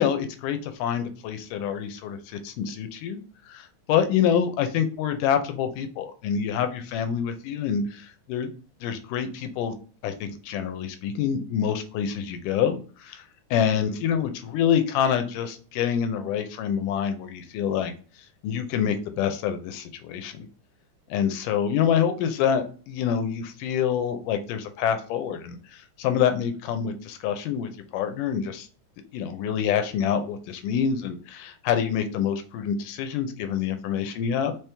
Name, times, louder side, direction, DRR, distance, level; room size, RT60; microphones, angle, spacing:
voice 1, 0.0-3.2 3.5-8.5 8.8-9.7 10.0-13.2 13.5-17.9 18.4-20.5 21.1-28.7 29.1-34.5, left 8 dB, 85° left, 8 dB, 2.1 m, -26 dB
5.1 x 3.0 x 3.3 m, 0.38 s
omnidirectional pair, 3.8 m